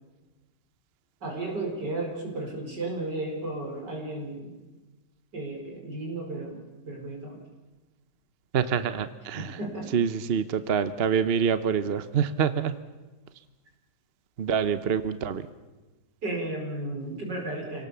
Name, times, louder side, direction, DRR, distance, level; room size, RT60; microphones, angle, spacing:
voice 1, 1.2-4.6 5.3-7.4 9.4-9.9 16.2-17.9, right 2 dB, 75° right, 1 dB, 5.4 m, -34 dB
voice 2, 8.5-9.6 9.9-12.7 14.4-15.4, right 7 dB, 45° right, 12 dB, 0.9 m, -26 dB
27.0 x 18.0 x 7.0 m, 1.2 s
omnidirectional pair, 1.9 m